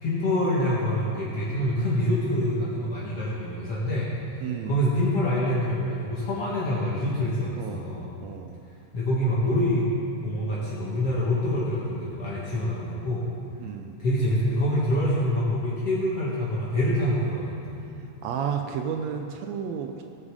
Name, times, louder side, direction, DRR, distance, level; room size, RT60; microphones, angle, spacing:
voice 1, 0.0-8.1 8.9-9.9 10.2-13.3 14.0-18.0, left 1 dB, 50° left, -7 dB, 2.7 m, -26 dB
voice 2, 4.4-4.8 7.5-7.9 8.2-8.6 13.6-14.0 18.2-20.0, right 7 dB, 75° right, 5 dB, 1.6 m, -32 dB
18.0 x 7.5 x 4.9 m, 2.7 s
omnidirectional pair, 3.6 m